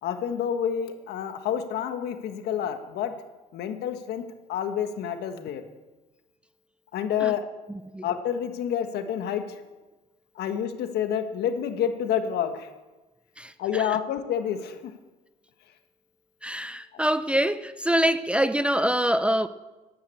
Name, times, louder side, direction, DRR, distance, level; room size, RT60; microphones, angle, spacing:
voice 1, 0.0-3.1 3.5-4.2 4.5-5.6 6.9-7.5 8.0-9.6 10.3-12.7 13.6-14.9 16.9-17.0, left 9 dB, 75° left, 1.5 m, -28 dB
voice 2, 13.4-13.9 16.4-19.5, equal, 5° right, 0.5 m, -25 dB
11.0 x 10.5 x 8.4 m
cardioid pair, 110°, 17 cm